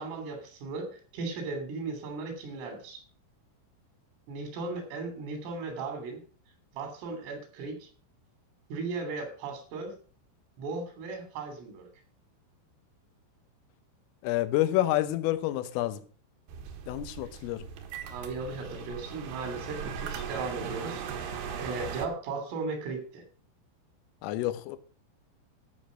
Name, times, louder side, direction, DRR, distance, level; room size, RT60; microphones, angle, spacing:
voice 1, 0.0-3.0 4.3-6.2 6.7-7.9 8.7-9.9 10.6-11.9 18.0-23.2, right 4 dB, 80° right, 5.6 m, -37 dB
voice 2, 14.2-16.0 16.9-17.7 24.2-24.8, left 15 dB, 85° left, 3.5 m, -28 dB
sound 1, 16.5-22.0, right 6 dB, 65° right, 2.7 m, -39 dB
13.5 x 6.3 x 6.2 m
omnidirectional pair, 5.7 m